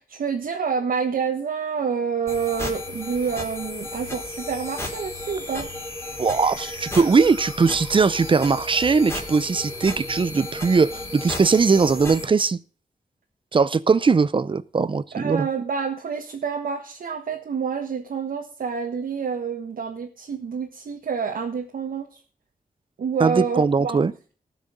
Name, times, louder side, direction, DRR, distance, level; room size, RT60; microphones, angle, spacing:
voice 1, 0.0-5.7 15.1-22.2 23.0-24.0, right 6 dB, 85° right, 1.4 m, -28 dB
sound 1, 2.3-12.3, left 2 dB, 15° left, 3.4 m, -34 dB
voice 2, 6.2-12.6 13.5-15.5 23.2-24.1, right 4 dB, 35° right, 0.6 m, -20 dB
18.5 x 6.3 x 5.2 m
wide cardioid pair, 150°, 14 cm